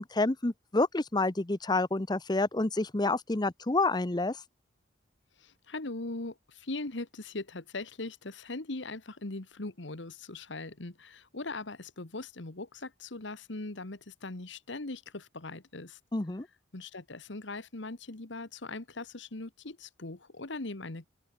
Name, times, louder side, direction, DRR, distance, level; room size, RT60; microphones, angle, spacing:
voice 1, 0.0-4.4 16.1-16.5, left 2 dB, 20° left, 0.7 m, -28 dB
voice 2, 5.4-16.0 16.7-21.1, left 2 dB, 70° left, 1.6 m, -40 dB
open air
head